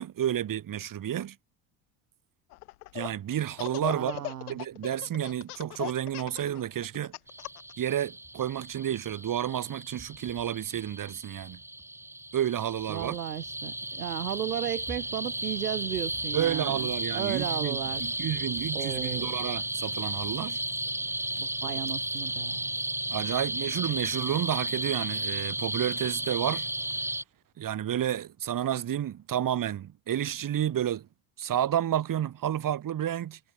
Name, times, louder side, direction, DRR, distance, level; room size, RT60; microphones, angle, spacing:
voice 1, 0.0-1.4 2.9-4.1 4.5-7.1 7.8-11.6 12.3-13.2 16.3-20.6 23.1-26.7 27.6-31.1 31.4-33.4, right 10 dB, 45° right, 7.4 m, -30 dB
Laughter, 2.5-3.1 3.5-7.7, left 19 dB, 75° left, 6.6 m, -38 dB
voice 2, 3.8-4.6 12.9-18.2 18.7-19.4 21.4-22.7, right 11 dB, 85° right, 2.3 m, -35 dB
sound 1, 7.3-27.2, right 1 dB, 5° right, 3.2 m, -34 dB
hypercardioid pair, 70°, 46 cm